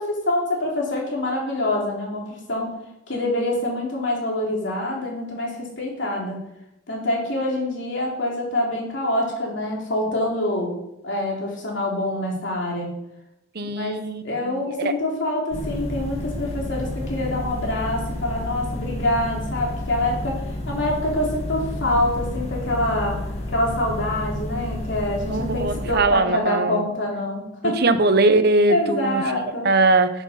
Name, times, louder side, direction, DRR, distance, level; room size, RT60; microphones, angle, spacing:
voice 1, 0.0-2.7 3.1-6.4 6.9-10.7 11.0-12.9 13.6-27.8 28.7-29.7, left 1 dB, 60° left, -2 dB, 3.6 m, -26 dB
voice 2, 13.6-14.9 25.3-26.8 27.8-29.2 29.6-30.1, right 2 dB, 55° right, 10 dB, 0.9 m, -20 dB
sound 1, 15.5-26.0, left 1 dB, 30° left, 2.2 m, -30 dB
13.0 x 7.0 x 5.8 m, 0.84 s
head